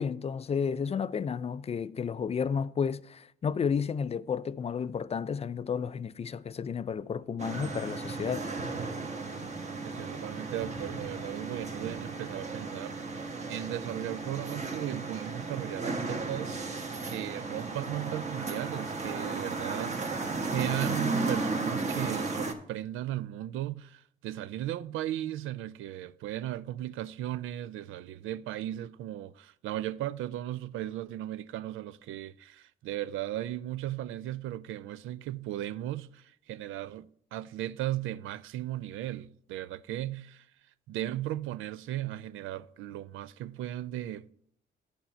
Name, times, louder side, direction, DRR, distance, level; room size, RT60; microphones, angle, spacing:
voice 1, 0.0-8.5, left 6 dB, 30° left, 0.4 m, -32 dB
sound 1, 7.4-22.5, right 3 dB, 35° right, 1.3 m, -35 dB
voice 2, 9.8-40.5 40.9-44.3, right 13 dB, 85° right, 0.4 m, -36 dB
9.1 x 7.0 x 4.3 m
cardioid pair, 90°, 20 cm